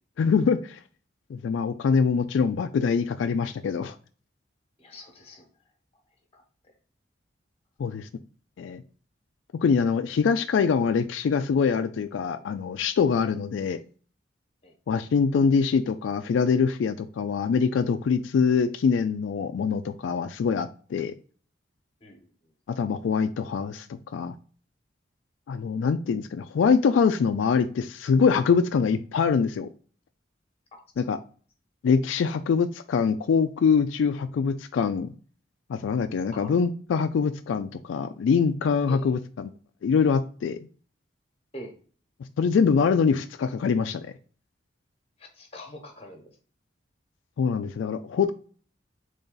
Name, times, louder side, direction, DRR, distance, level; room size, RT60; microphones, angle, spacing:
voice 1, 0.2-0.8 1.3-3.9 7.8-8.1 8.6-8.8 9.6-13.8 14.9-21.1 22.8-24.3 25.5-29.7 31.0-31.2 31.8-35.1 35.7-39.5 39.8-40.6 42.4-44.1 47.4-48.3, left 5 dB, 80° left, 9 dB, 0.3 m, -24 dB
voice 2, 4.8-5.5 6.3-6.4 7.9-8.0 14.6-14.7 22.0-22.3 30.7-30.8 36.3-36.5 38.9-39.2 41.5-41.7 45.2-46.4, equal, 30° left, 4 dB, 1.1 m, -44 dB
4.0 x 3.3 x 3.8 m, 0.42 s
head